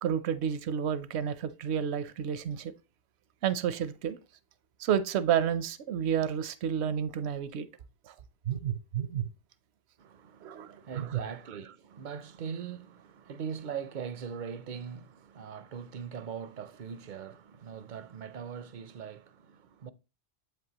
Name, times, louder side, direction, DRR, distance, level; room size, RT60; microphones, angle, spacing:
voice 1, 0.0-2.7 3.4-4.2 4.8-7.7 8.1-8.2 8.5-9.3 10.4-11.2, right 8 dB, 80° right, 0.9 m, -30 dB
voice 2, 10.0-19.9, right 7 dB, 60° right, 0.6 m, -41 dB
8.0 x 5.3 x 2.9 m
omnidirectional pair, 1.1 m